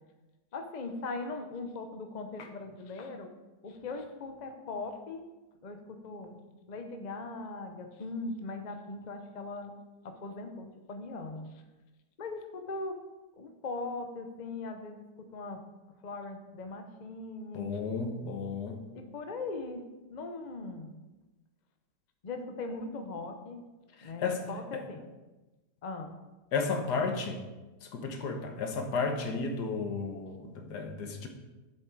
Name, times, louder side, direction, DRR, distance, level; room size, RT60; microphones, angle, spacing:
voice 1, 0.5-3.3 3.6-5.2 5.6-6.4 6.7-9.7 10.0-11.5 12.2-13.0 13.4-15.6 16.0-17.8 18.9-19.8 20.1-20.9 22.2-23.6 24.0-25.1 25.8-26.1, left 3 dB, 40° left, 5 dB, 0.6 m, -40 dB
voice 2, 17.5-18.8 24.0-24.4 26.5-27.4 27.9-31.3, left 4 dB, 75° left, 5 dB, 1.6 m, -33 dB
7.8 x 7.2 x 4.6 m, 1.1 s
omnidirectional pair, 1.8 m